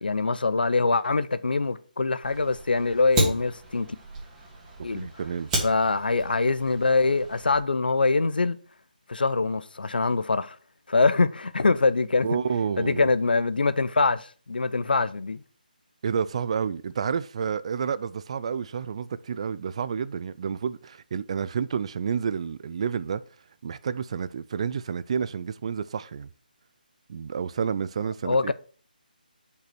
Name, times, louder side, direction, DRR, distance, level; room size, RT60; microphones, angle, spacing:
voice 1, 0.0-3.9 4.8-5.1 5.6-8.6 9.1-10.6 10.9-12.4 12.8-15.4 28.2-28.5, left 3 dB, 75° left, 0.6 m, -24 dB
Fire, 2.2-7.6, right 1 dB, 15° right, 2.7 m, -33 dB
voice 2, 4.9-5.5 12.2-13.1 16.0-23.2 23.6-26.3 27.1-28.5, right 6 dB, 40° right, 0.4 m, -30 dB
6.6 x 5.4 x 6.0 m
figure-of-eight pair, 155°, 5 cm